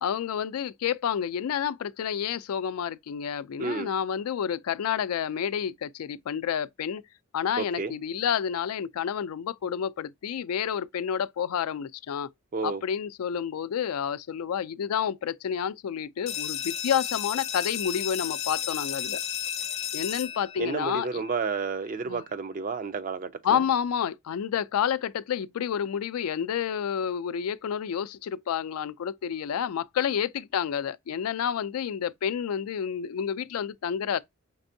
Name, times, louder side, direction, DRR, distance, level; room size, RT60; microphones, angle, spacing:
voice 1, 0.0-7.0 7.3-12.3 12.6-19.2 19.9-21.2 22.1-22.2 23.4-34.2, left 8 dB, 90° left, 0.4 m, -29 dB
voice 2, 3.6-3.9 7.6-7.9 12.5-12.8 20.6-23.6, right 4 dB, 35° right, 0.3 m, -31 dB
sound 1, 16.3-21.7, left 10 dB, 30° left, 0.5 m, -33 dB
5.3 x 3.4 x 2.6 m
head